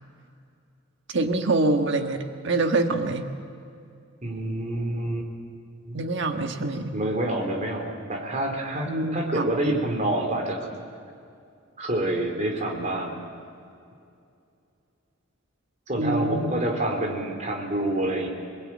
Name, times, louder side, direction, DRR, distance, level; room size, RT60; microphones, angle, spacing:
voice 1, 1.1-3.2 5.9-6.9 8.9-9.7 16.0-16.5, right 2 dB, 55° right, 5 dB, 1.5 m, -25 dB
voice 2, 4.2-5.3 5.8-6.0 6.9-10.7 11.8-13.2 15.9-18.3, right 1 dB, 35° right, 2 dB, 3.6 m, -27 dB
26.5 x 20.0 x 8.8 m, 2.5 s
head